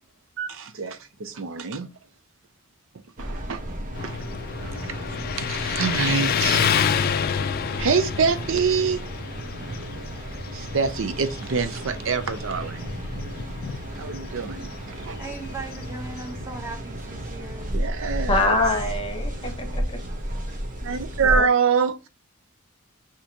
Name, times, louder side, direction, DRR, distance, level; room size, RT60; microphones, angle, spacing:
voice 1, 0.4-1.9 3.2-3.6 4.0-4.1 4.7-7.5 7.8-9.0 10.5-12.9 13.9-15.2 17.7-18.6 20.8-22.1, right 5 dB, 65° right, 0.5 m, -26 dB
sound 1, 3.2-21.4, right 1 dB, 40° right, 1.0 m, -33 dB
Motorcycle, 3.9-16.6, left 8 dB, 45° left, 0.3 m, -29 dB
voice 2, 15.2-17.8, right 3 dB, 10° right, 1.0 m, -38 dB
voice 3, 18.3-20.0 21.3-21.5, left 2 dB, 25° left, 1.0 m, -24 dB
6.4 x 2.9 x 2.8 m
head